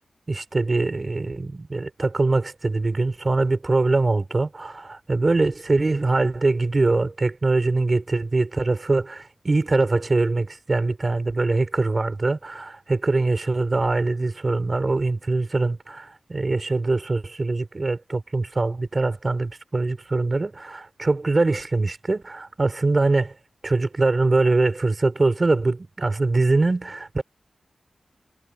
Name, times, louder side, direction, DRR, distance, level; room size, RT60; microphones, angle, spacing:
voice 1, 0.3-23.3 23.6-27.2, right 3 dB, 40° right, 6.3 m, -23 dB
cardioid pair, 65°, 0 cm